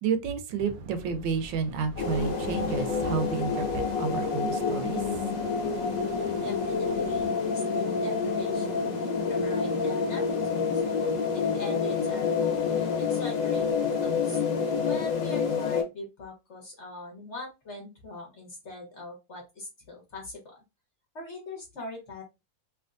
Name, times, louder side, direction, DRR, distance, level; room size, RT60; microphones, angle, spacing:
voice 1, 0.0-5.1, right 6 dB, 85° right, 1.3 m, -30 dB
sound 1, 0.6-7.3, right 1 dB, 70° right, 0.9 m, -44 dB
sound 2, 2.0-15.8, left 5 dB, 75° left, 1.5 m, -28 dB
voice 2, 6.4-8.9 9.3-10.8 11.3-13.7 14.0-14.4 14.8-20.5 21.1-22.2, left 2 dB, 45° left, 1.1 m, -42 dB
3.3 x 2.8 x 2.5 m
omnidirectional pair, 2.0 m